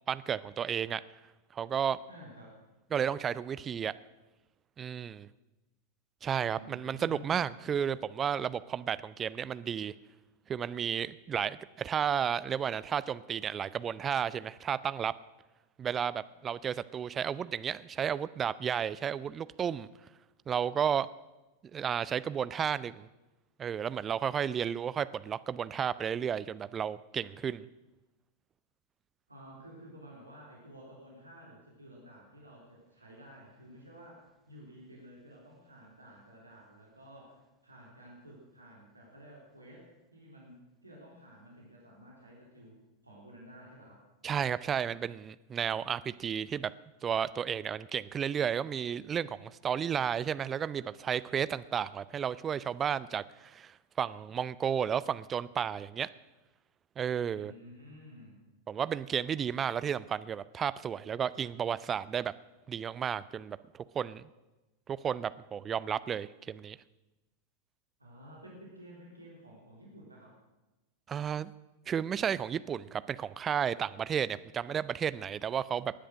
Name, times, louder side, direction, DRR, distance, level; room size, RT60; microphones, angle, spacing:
voice 1, 0.1-1.0 1.5-2.0 2.9-3.9 4.8-5.3 6.2-9.9 10.5-15.1 15.8-19.9 20.5-21.1 21.7-23.1 23.6-27.7 44.2-46.7 47.0-56.1 57.0-57.5 58.7-62.3 62.7-64.2 64.9-66.8 71.1-71.5 71.9-75.9, right 8 dB, 25° right, 17 dB, 0.5 m, -32 dB
voice 2, 2.1-2.6 6.4-7.4 29.3-39.8 40.1-44.0 57.3-58.4 68.0-70.3, equal, 85° right, -3 dB, 3.4 m, -52 dB
19.0 x 10.0 x 6.3 m, 1.1 s
figure-of-eight pair, 90°, 0 cm